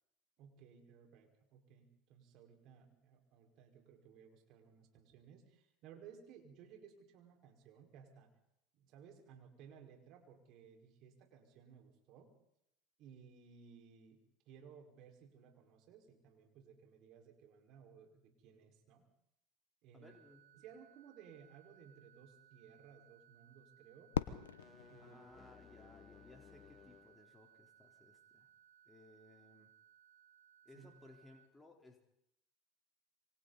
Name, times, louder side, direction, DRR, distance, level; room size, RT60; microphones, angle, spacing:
voice 1, 0.4-8.3 8.7-12.3 13.0-19.1 19.8-20.2 20.5-24.1 24.9-25.2 30.7-30.9, right 7 dB, 60° right, 3 dB, 5.1 m, -59 dB
voice 2, 19.9-20.5 25.0-28.5 28.9-29.7 30.6-32.0, left 2 dB, 10° left, 1 dB, 3.9 m, -61 dB
sound 1, 20.0-31.4, right 10 dB, 80° right, 7.7 m, -66 dB
Fireworks, 24.1-26.3, left 9 dB, 85° left, 1.0 m, -42 dB
Fog Horn, 24.4-27.2, left 7 dB, 35° left, 2.0 m, -60 dB
27.0 x 24.5 x 4.2 m, 0.80 s
hypercardioid pair, 80°, 0 cm